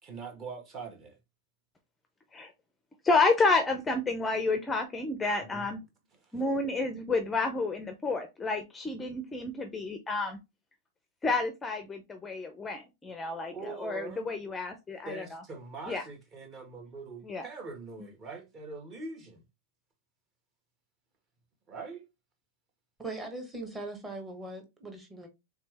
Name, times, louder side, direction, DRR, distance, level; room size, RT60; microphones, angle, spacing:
voice 1, 0.0-1.2 5.4-5.7 6.2-6.4 13.5-14.3 15.0-19.4 21.7-22.1, right 4 dB, 30° right, 1.4 m, -43 dB
voice 2, 3.0-5.8 6.3-10.4 11.2-15.4 15.9-16.0 17.3-17.4, left 3 dB, 10° left, 0.5 m, -30 dB
voice 3, 23.0-25.3, right 2 dB, 10° right, 1.2 m, -40 dB
3.5 x 3.3 x 3.3 m
supercardioid pair, 145°, 0 cm